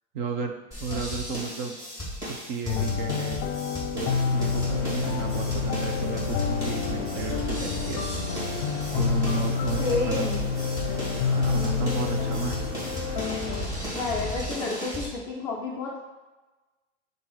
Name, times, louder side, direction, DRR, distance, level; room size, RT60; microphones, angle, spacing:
voice 1, 0.1-0.5 0.8-1.8 2.2-3.4 3.9-8.0 8.9-10.3 10.8-12.7, right 5 dB, 45° right, 5 dB, 0.8 m, -33 dB
sound 1, 0.7-15.1, equal, 10° right, 2.4 m, -36 dB
sound 2, 2.7-13.7, left 6 dB, 45° left, 0.7 m, -28 dB
sound 3, 4.0-14.3, right 1 dB, 65° right, 1.6 m, -37 dB
voice 2, 9.8-10.4 13.9-16.0, left 3 dB, 10° left, -6 dB, 0.3 m, -30 dB
8.1 x 2.7 x 6.1 m, 1.2 s
supercardioid pair, 165°, 36 cm